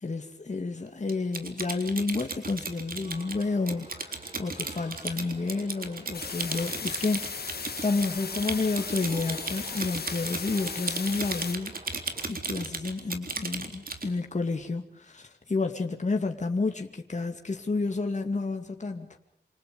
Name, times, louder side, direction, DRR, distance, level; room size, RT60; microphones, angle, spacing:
voice 1, 0.0-7.5 7.8-11.7 12.3-19.2, left 3 dB, 45° left, 4 dB, 2.4 m, -30 dB
Typing, 1.1-14.1, right 3 dB, 60° right, 3.8 m, -36 dB
sound 1, 3.0-12.3, right 1 dB, 35° right, 4.8 m, -50 dB
sound 2, 6.1-11.5, left 5 dB, 65° left, 1.3 m, -37 dB
28.5 x 27.5 x 5.3 m, 0.69 s
wide cardioid pair, 90°, 17 cm